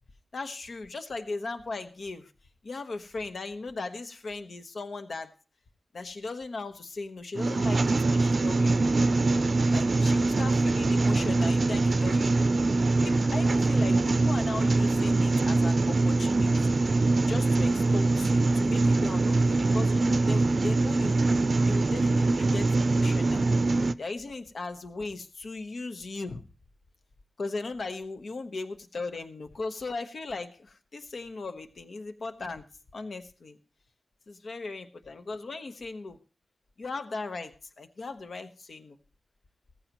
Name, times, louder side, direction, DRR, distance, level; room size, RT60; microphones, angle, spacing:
voice 1, 0.3-2.3 2.6-5.3 5.9-9.0 9.7-12.5 13.0-16.8 17.3-23.5 24.0-26.4 27.4-32.7 32.9-33.6 34.3-36.2 36.8-39.0, left 3 dB, 75° left, 8 dB, 1.2 m, -38 dB
sound 1, 7.3-23.9, right 3 dB, 60° right, 0.5 m, -23 dB
16.5 x 14.5 x 3.1 m, 0.33 s
wide cardioid pair, 80°, 0 cm